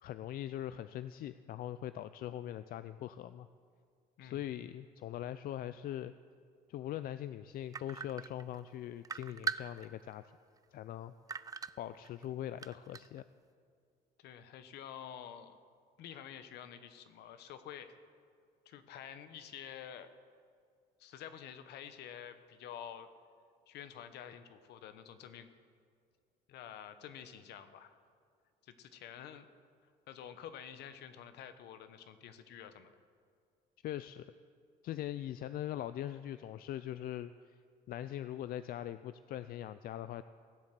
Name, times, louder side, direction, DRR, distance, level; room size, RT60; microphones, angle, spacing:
voice 1, 0.0-3.5 4.2-6.1 6.7-10.3 10.7-11.1 11.8-13.2 33.8-34.3 34.8-37.6 37.9-40.2, left 12 dB, 60° left, 13 dB, 0.4 m, -41 dB
sound 1, 7.7-8.7 9.0-10.1 10.6-10.7 11.3-12.3 12.6-13.2, right 6 dB, 20° right, 0.4 m, -40 dB
voice 2, 14.2-15.6 16.0-18.0 18.6-20.1 21.0-23.1 23.7-25.5 26.5-28.0 28.6-29.5 30.1-32.9, left 9 dB, 75° left, 11 dB, 1.0 m, -49 dB
17.5 x 7.8 x 7.6 m, 2.2 s
cardioid pair, 110°, 17 cm